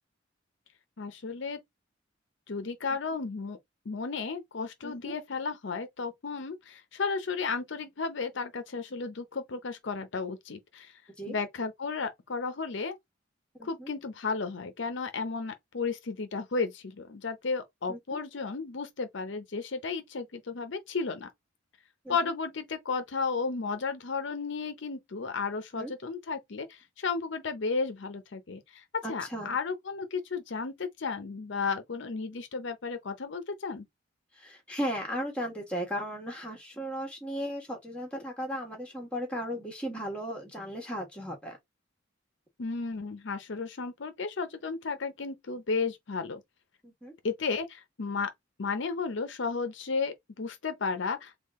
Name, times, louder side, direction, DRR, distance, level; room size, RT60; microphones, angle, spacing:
voice 1, 1.0-1.6 2.5-3.6 3.9-11.0 11.3-13.0 13.6-21.3 22.1-33.9 42.6-46.4 47.2-48.3 48.6-51.3, left 4 dB, 65° left, 0.6 m, -33 dB
voice 2, 4.8-5.1 11.2-11.4 13.6-13.9 17.9-18.0 22.0-22.3 25.7-25.9 29.0-29.6 34.3-41.6 46.8-47.1, equal, 5° left, 1.3 m, -36 dB
3.7 x 2.4 x 3.5 m
head